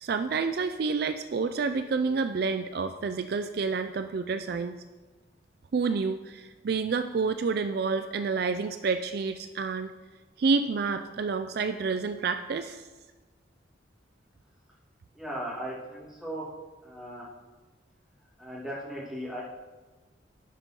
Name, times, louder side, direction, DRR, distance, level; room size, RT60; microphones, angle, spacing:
voice 1, 0.0-4.8 5.7-9.9 10.4-12.9, right 4 dB, 55° right, 9 dB, 0.4 m, -29 dB
voice 2, 15.1-16.5 16.8-17.3 18.4-19.4, equal, ahead, -8 dB, 2.6 m, -37 dB
12.0 x 5.3 x 4.4 m, 1.3 s
head